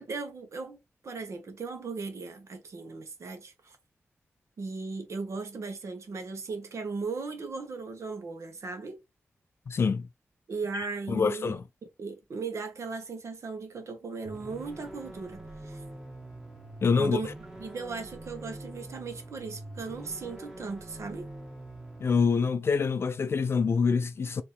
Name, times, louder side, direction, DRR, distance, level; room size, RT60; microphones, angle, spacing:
voice 1, 0.0-3.8 4.6-9.0 10.5-11.6 12.0-15.8 17.0-17.3 17.6-21.3, right 4 dB, 75° right, 1.3 m, -37 dB
voice 2, 9.7-10.1 11.1-11.6 16.8-17.2 22.0-24.4, left 5 dB, 55° left, 0.4 m, -25 dB
sound 1, 14.2-22.2, right 1 dB, 10° right, 1.5 m, -44 dB
4.8 x 3.0 x 3.3 m
wide cardioid pair, 115°, 5 cm